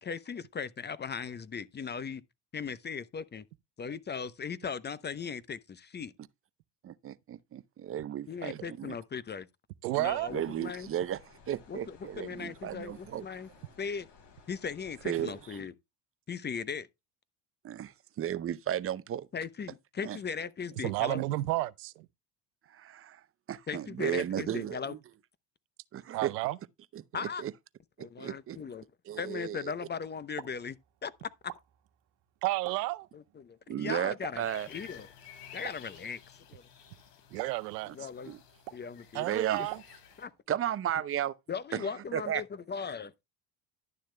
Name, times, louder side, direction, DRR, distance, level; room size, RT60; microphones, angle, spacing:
voice 1, 0.0-2.2 2.5-3.4 3.8-6.1 8.3-9.5 9.9-10.9 11.7-13.5 13.8-14.1 14.5-15.7 16.3-16.9 19.3-21.2 23.7-24.9 27.1-27.4 28.0-28.8 29.2-30.8 31.0-31.1 31.4-31.5 33.1-35.1 35.5-36.2 36.5-36.6 37.9-38.3 38.7-39.3 40.2-40.3 41.5-43.1, left 6 dB, 20° left, 0.6 m, -38 dB
voice 2, 6.8-9.0 10.3-11.2 11.5-13.2 15.0-15.6 17.6-19.3 20.0-20.2 22.7-23.2 23.5-25.0 25.9-26.3 26.9-27.5 28.0-28.6 29.1-29.7 33.7-34.7 37.9-38.0 38.3-38.4 39.1-39.6 40.5-41.3 41.7-42.4, right 10 dB, 30° right, 0.6 m, -34 dB
voice 3, 9.8-10.3 20.8-22.1 26.1-26.6 32.4-33.1 37.3-37.9 39.1-39.8, right 19 dB, 80° right, 0.7 m, -31 dB
sound 1, 10.0-15.7, left 4 dB, 55° left, 5.4 m, -58 dB
Explosion, 30.1-40.4, right 15 dB, 65° right, 1.5 m, -51 dB
sound 2, 34.4-40.3, left 8 dB, 80° left, 3.1 m, -53 dB
11.5 x 10.0 x 2.2 m
hypercardioid pair, 75°, 48 cm